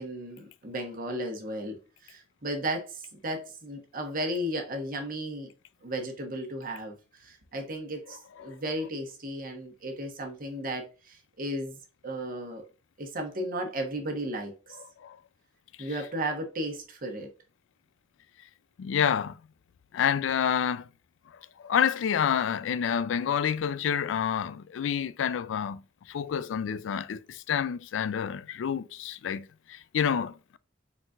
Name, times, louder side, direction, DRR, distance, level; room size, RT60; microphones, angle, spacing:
voice 1, 0.0-5.5 5.8-12.7 13.0-14.8 15.8-17.3, right 1 dB, 50° right, 1.2 m, -35 dB
voice 2, 18.8-19.4 19.9-20.9 21.6-25.8 26.1-30.6, left 8 dB, 75° left, 0.3 m, -28 dB
4.1 x 3.9 x 2.4 m
head